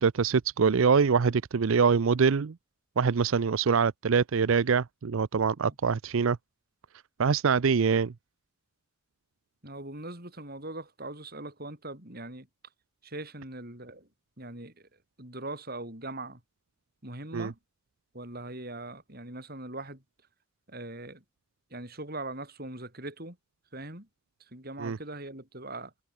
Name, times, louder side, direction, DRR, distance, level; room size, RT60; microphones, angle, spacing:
voice 1, 0.0-2.5 3.0-6.4 7.2-8.1 17.3-17.5 24.8-25.0, right 5 dB, 70° right, 0.5 m, -24 dB
voice 2, 9.6-12.5 13.0-14.1 14.4-16.4 17.0-17.6 18.1-20.0 20.7-21.2 21.7-23.4 23.7-24.1 24.4-25.9, right 2 dB, 45° right, 5.5 m, -41 dB
head